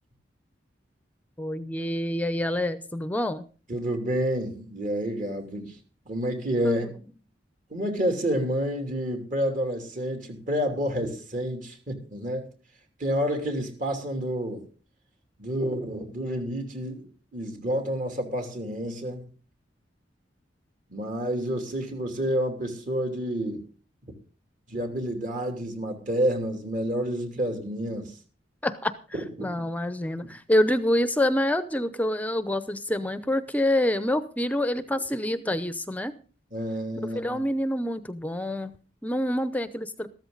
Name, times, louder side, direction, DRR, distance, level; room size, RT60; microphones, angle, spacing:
voice 1, 1.4-3.4 6.6-6.9 28.6-28.9 29.4-36.1 37.1-38.7 39.0-40.1, left 1 dB, 10° left, 12 dB, 0.7 m, -26 dB
voice 2, 3.7-5.7 6.1-6.9 7.7-12.5 13.0-14.6 15.4-17.1 17.3-19.3 20.9-23.6 24.7-28.1 29.1-29.5 36.5-37.4, equal, 45° right, 4 dB, 3.0 m, -29 dB
14.0 x 13.5 x 4.0 m, 0.37 s
head